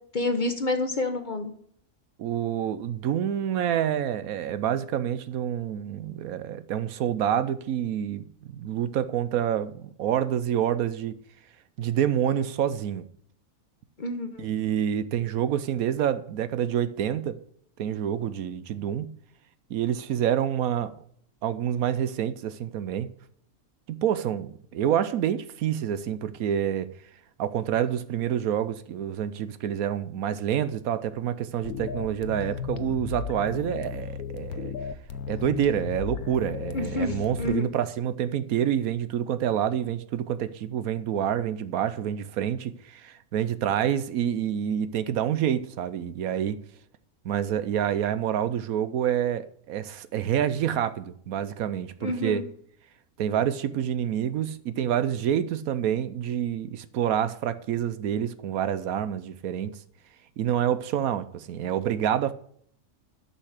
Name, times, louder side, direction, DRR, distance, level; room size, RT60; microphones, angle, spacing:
voice 1, 0.1-1.5 14.0-14.5 36.7-37.7 52.0-52.4, left 2 dB, 35° left, 0.9 m, -28 dB
voice 2, 2.2-11.2 11.8-13.1 14.4-17.4 17.8-19.1 19.7-21.0 21.4-23.1 23.9-26.9 27.4-34.7 35.3-46.6 47.2-52.5 53.2-59.7 60.4-62.3, right 10 dB, 75° right, 1.1 m, -27 dB
sound 1, 31.6-37.4, left 7 dB, 85° left, 1.2 m, -35 dB
12.0 x 5.6 x 6.5 m
omnidirectional pair, 1.6 m